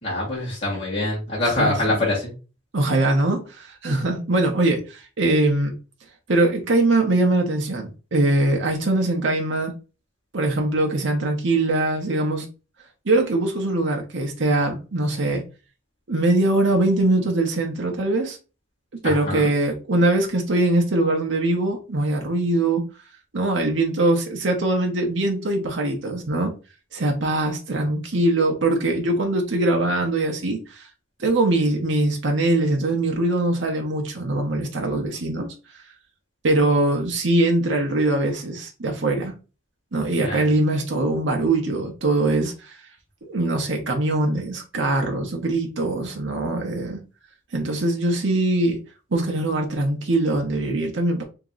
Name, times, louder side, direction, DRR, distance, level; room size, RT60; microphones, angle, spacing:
voice 1, 0.0-2.3 19.0-19.5 40.2-40.4, left 2 dB, 30° left, 1.4 m, -24 dB
voice 2, 1.6-2.1 2.7-5.7 6.3-9.7 10.3-12.5 13.1-15.4 16.1-18.4 19.0-22.8 23.3-26.5 26.9-30.8 31.2-35.5 36.4-39.3 39.9-42.8 43.3-47.0 47.5-48.8 49.1-51.2, right 2 dB, 70° right, 0.8 m, -22 dB
3.0 x 2.9 x 3.7 m
head